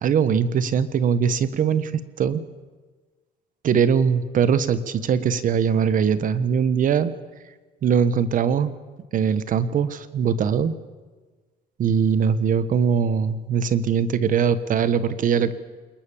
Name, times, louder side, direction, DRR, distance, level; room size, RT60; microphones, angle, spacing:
voice 1, 0.0-2.4 3.6-7.1 7.8-8.7 9.1-10.7 11.8-15.5, right 7 dB, 50° right, 14 dB, 1.4 m, -21 dB
27.0 x 22.5 x 7.2 m, 1.3 s
cardioid pair, 110°, 17 cm